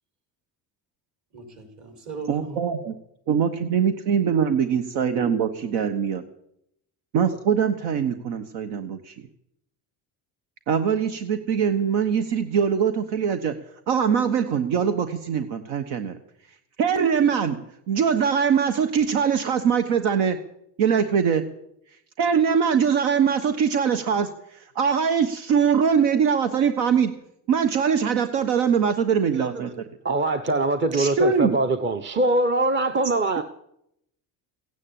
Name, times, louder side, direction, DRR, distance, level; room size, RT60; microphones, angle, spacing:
voice 1, 1.3-2.6, right 4 dB, 45° right, 5.3 m, -38 dB
voice 2, 2.3-2.9 3.3-6.2 7.1-9.1 10.7-13.5 13.9-16.2 16.8-17.6 17.9-20.4 20.8-21.5 22.2-24.3 24.7-27.1 27.5-29.7 30.9-31.6 33.4-33.5, right 7 dB, 75° right, 1.3 m, -22 dB
voice 3, 29.3-29.7 30.0-33.4, right 2 dB, 25° right, 0.9 m, -23 dB
16.0 x 9.8 x 8.7 m
cardioid pair, 115°, 41 cm